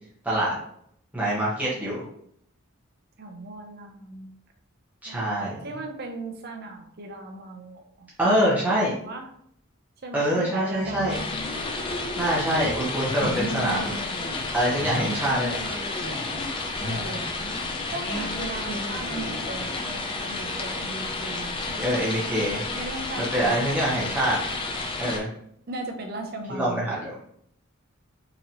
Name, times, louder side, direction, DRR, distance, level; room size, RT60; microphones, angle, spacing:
voice 1, 0.2-0.5 1.1-2.0 5.0-5.6 8.2-8.9 10.1-11.2 12.2-13.9 14.5-15.6 21.8-22.6 23.2-24.4 25.0-25.3 26.5-27.1, right 1 dB, 5° right, -7 dB, 0.8 m, -25 dB
voice 2, 3.2-4.3 5.1-8.4 8.7-9.3 10.0-11.2 16.8-17.3 17.9-22.0 22.7-23.6 25.7-27.0, right 2 dB, 45° right, 2 dB, 0.6 m, -38 dB
sound 1, 10.7-12.8 13.0-14.5 14.8-16.5 16.8-20.0, left 1 dB, 80° left, 0.8 m, -35 dB
sound 2, 11.1-25.2, left 3 dB, 25° left, 0.4 m, -31 dB
3.9 x 2.9 x 2.8 m, 0.70 s
head